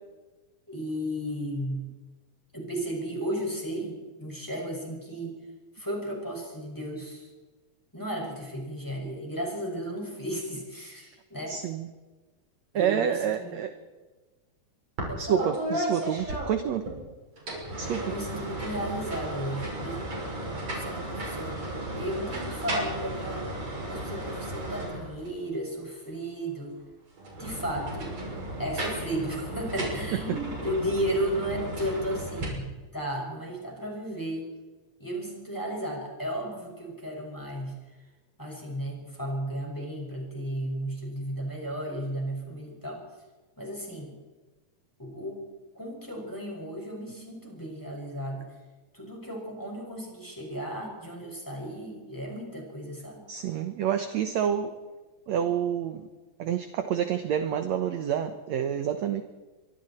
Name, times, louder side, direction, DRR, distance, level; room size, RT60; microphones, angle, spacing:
voice 1, 0.7-1.9 2.5-5.4 5.7-7.3 7.9-11.6 12.7-13.6 15.1-15.5 17.7-20.3 20.7-21.6 21.9-23.5 23.9-26.7 27.3-28.2 28.6-34.5 35.0-37.7 38.4-43.0 43.6-44.1 45.0-45.5 45.7-48.5 48.9-53.3, equal, 5° left, -1 dB, 6.0 m, -34 dB
voice 2, 11.5-11.9 12.8-13.7 15.2-16.8 17.8-18.0 53.3-54.7 55.3-56.1 56.4-59.2, right 9 dB, 65° right, 8 dB, 1.9 m, -28 dB
sound 1, 15.0-15.1 15.4-17.0 17.4-25.4 27.2-32.4, right 1 dB, 45° right, 7.3 m, -34 dB
25.5 x 24.0 x 4.4 m, 1.2 s
omnidirectional pair, 4.1 m